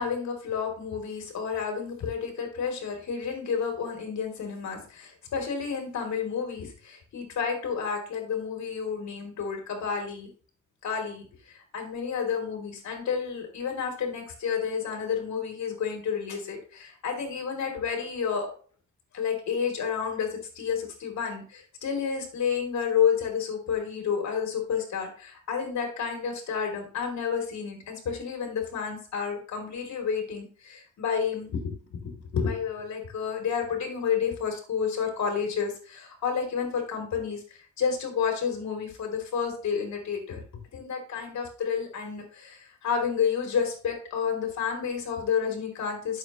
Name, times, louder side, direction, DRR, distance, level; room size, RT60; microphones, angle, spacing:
voice 1, 0.0-10.3 10.8-18.5 19.1-40.4 40.7-46.2, left 6 dB, 65° left, 2 dB, 3.4 m, -30 dB
9.7 x 7.3 x 3.1 m, 0.41 s
cardioid pair, 90°, 30 cm